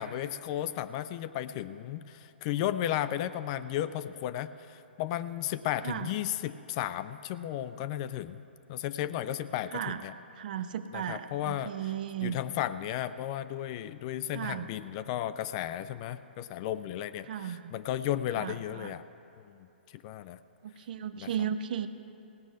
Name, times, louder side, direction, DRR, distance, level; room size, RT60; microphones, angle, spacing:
voice 1, 0.0-8.4 8.7-10.1 10.9-11.9 12.2-19.0 19.5-19.6 19.9-20.4 21.2-21.3, left 12 dB, 35° left, 13 dB, 0.4 m, -34 dB
voice 2, 10.4-12.4 14.3-14.7 17.3-17.7 18.4-18.9 20.6-21.9, right 9 dB, 50° right, 11 dB, 0.6 m, -35 dB
16.5 x 6.2 x 9.4 m, 2.7 s
figure-of-eight pair, 120°, 6 cm